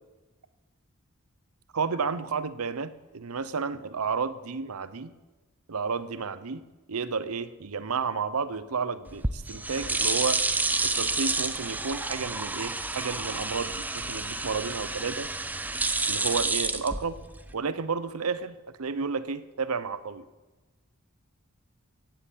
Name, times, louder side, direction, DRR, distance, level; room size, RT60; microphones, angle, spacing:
voice 1, 1.7-5.1 5.7-6.6 6.9-10.4 10.8-15.3 16.1-17.2 17.5-20.3, right 5 dB, 90° right, 14 dB, 0.8 m, -31 dB
sound 1, 9.1-17.5, right 3 dB, 10° right, 0.5 m, -29 dB
16.0 x 7.9 x 8.3 m, 1.2 s
head